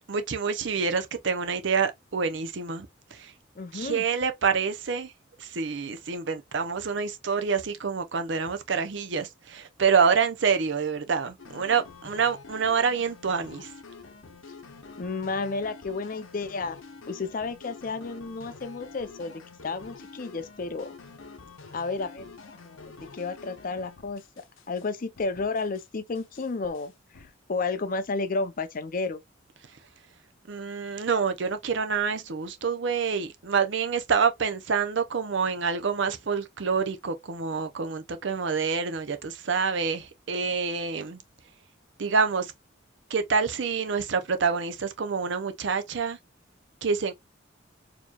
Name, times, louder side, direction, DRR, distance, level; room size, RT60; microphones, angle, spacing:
voice 1, 0.1-2.9 3.1-3.3 3.7-5.1 5.4-13.7 30.5-41.2 42.0-42.5 43.1-46.2 46.8-47.1, right 5 dB, 65° right, 0.6 m, -27 dB
voice 2, 3.6-4.0 15.0-16.8 17.1-19.3 19.6-20.9 21.7-22.2 22.6-24.2 24.7-29.2, left 3 dB, 45° left, 0.5 m, -32 dB
sound 1, 11.4-24.9 25.2-25.9 26.1-27.3, left 4 dB, 85° left, 0.8 m, -47 dB
4.5 x 2.9 x 2.3 m
head